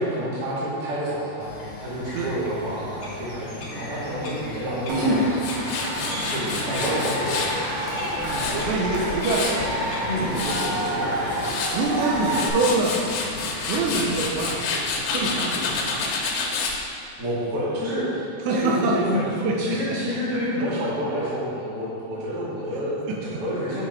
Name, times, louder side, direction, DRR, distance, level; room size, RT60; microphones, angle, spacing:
voice 1, 0.0-1.5 1.8-5.4 6.3-7.5 10.1-11.0 17.2-19.2 19.6-22.9 23.2-23.8, equal, 40° right, -9 dB, 2.4 m, -28 dB
Bird vocalization bird call bird song, 1.4-14.7, left 1 dB, 70° left, 1.5 m, -38 dB
Cheering / Crowd, 4.9-12.5, equal, 55° right, 2.7 m, -27 dB
Tools, 5.4-7.5 8.0-9.7 10.1-10.7 11.2-11.8 12.2-16.8, left 4 dB, 90° left, 3.1 m, -29 dB
voice 2, 8.2-11.2 11.7-13.0 13.5-14.9 15.1-16.1 18.4-19.2 19.4-19.8 23.1-23.4, right 3 dB, 85° right, -2 dB, 2.9 m, -26 dB
8.3 x 5.3 x 4.7 m, 2.4 s
omnidirectional pair, 5.0 m